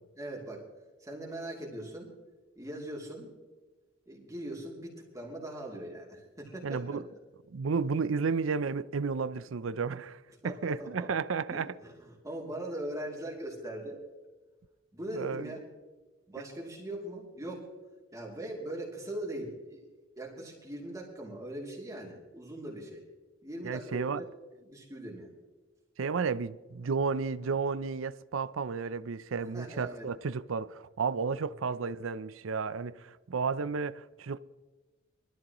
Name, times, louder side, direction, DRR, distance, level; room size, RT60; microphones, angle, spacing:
voice 1, 0.2-0.7 1.0-2.1 2.6-3.3 4.1-7.0 10.4-11.1 11.5-14.0 14.9-15.6 16.3-17.7 18.1-19.9 20.2-23.1 23.4-24.1 24.5-25.3 29.4-30.1 31.3-31.4, right 1 dB, 15° right, 2.9 m, -41 dB
voice 2, 6.6-7.0 7.5-11.7 15.1-15.5 23.6-24.2 26.0-34.4, right 5 dB, 85° right, 0.5 m, -32 dB
23.0 x 13.5 x 3.0 m
head